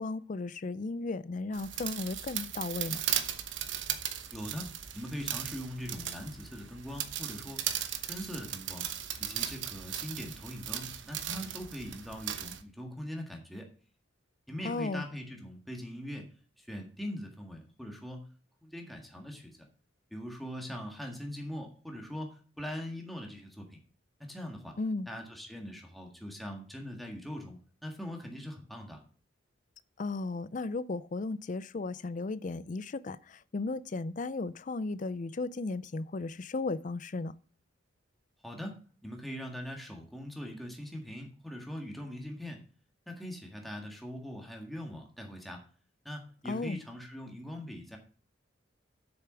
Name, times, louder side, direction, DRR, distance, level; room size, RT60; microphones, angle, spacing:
voice 1, 0.0-3.0 14.6-15.1 24.8-25.1 30.0-37.3 46.4-46.8, left 3 dB, 40° left, 0.4 m, -35 dB
sound 1, 1.5-12.6, right 10 dB, 70° right, 1.0 m, -37 dB
voice 2, 4.3-4.7 4.9-7.6 8.1-8.9 9.2-13.7 14.5-16.3 16.6-18.2 18.6-19.7 20.1-23.8 24.2-24.8 25.1-29.0 38.4-38.7 39.0-42.6 43.1-45.6 46.0-48.0, equal, ahead, 1.7 m, -41 dB
8.0 x 6.7 x 6.1 m
head